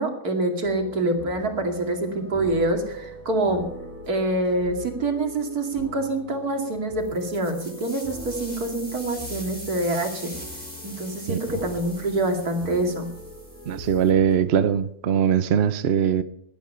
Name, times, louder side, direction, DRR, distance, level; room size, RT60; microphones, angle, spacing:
voice 1, 0.0-3.7 4.1-10.4 10.8-13.1, right 2 dB, 80° right, 3 dB, 2.9 m, -26 dB
sound 1, 0.6-14.8, left 1 dB, 10° right, 6.1 m, -42 dB
sound 2, 7.0-14.1, equal, 5° left, 5.0 m, -42 dB
voice 2, 13.7-16.2, right 8 dB, 50° right, 12 dB, 0.9 m, -21 dB
17.5 x 12.0 x 5.6 m, 0.71 s
omnidirectional pair, 1.6 m